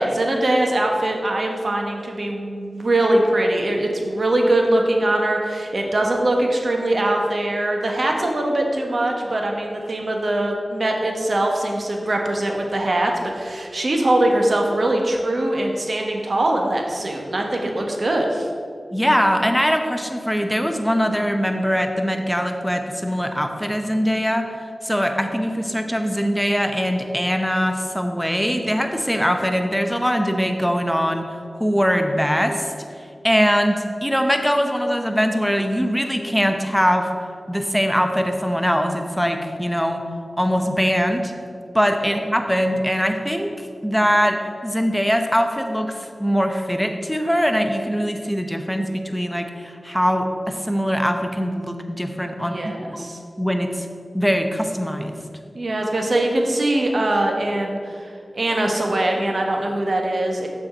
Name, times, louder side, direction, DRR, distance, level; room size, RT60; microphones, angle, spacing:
voice 1, 0.0-18.5 52.5-53.2 55.5-60.5, right 1 dB, 65° right, 1 dB, 1.2 m, -22 dB
voice 2, 18.9-24.5 24.8-31.2 31.6-32.7 33.2-37.1 37.5-40.0 40.4-41.3 41.7-44.4 44.6-52.6 52.9-53.1 53.4-53.9 54.1-55.1, equal, ahead, 5 dB, 0.9 m, -22 dB
7.1 x 4.4 x 6.6 m, 2.3 s
cardioid pair, 40°, 0 cm